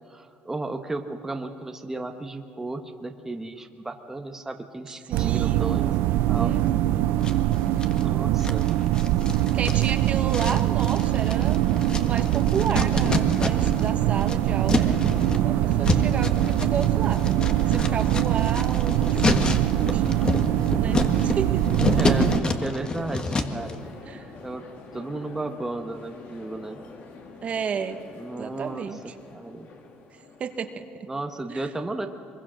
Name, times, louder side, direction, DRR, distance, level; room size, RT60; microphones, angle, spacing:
voice 1, 0.1-5.9 6.3-6.6 7.8-8.7 22.0-23.8 24.4-24.6 24.9-26.8 28.2-29.0 29.3-29.7 31.1-32.1, right 2 dB, 10° right, 4 dB, 1.2 m, -34 dB
voice 2, 5.1-5.7 6.3-7.1 9.5-11.6 12.0-17.2 17.7-20.0 20.7-21.6 24.0-24.3 27.4-28.0 28.4-29.0 30.4-31.1 31.5-31.7, right 6 dB, 40° right, 7 dB, 1.4 m, -32 dB
sound 1, 5.1-22.4, right 14 dB, 75° right, 0.6 m, -23 dB
sound 2, 7.2-8.0 8.4-13.9 14.1-23.7, left 3 dB, 25° left, 1.6 m, -28 dB
sound 3, 10.9-30.8, left 4 dB, 55° left, 2.9 m, -44 dB
23.5 x 22.5 x 6.5 m, 2.6 s
cardioid pair, 125°, 3 cm